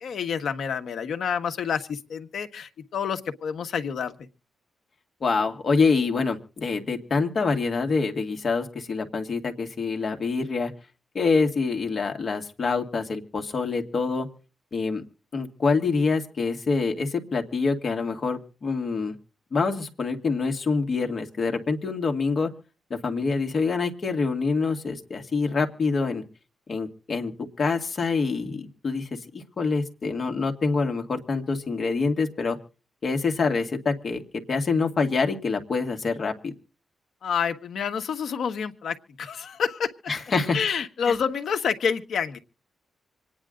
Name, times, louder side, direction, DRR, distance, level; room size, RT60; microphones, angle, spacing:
voice 1, 0.0-4.1 37.2-39.9 40.5-42.4, left 7 dB, 60° left, 7 dB, 1.3 m, -28 dB
voice 2, 5.2-10.7 11.1-14.3 14.7-15.0 15.3-19.1 19.5-22.5 22.9-26.2 26.7-27.3 27.6-32.6 33.0-36.5 40.1-40.6 41.1-41.2, left 4 dB, 35° left, 4 dB, 1.8 m, -26 dB
26.0 x 9.9 x 3.8 m, 0.37 s
wide cardioid pair, 175°, 0 cm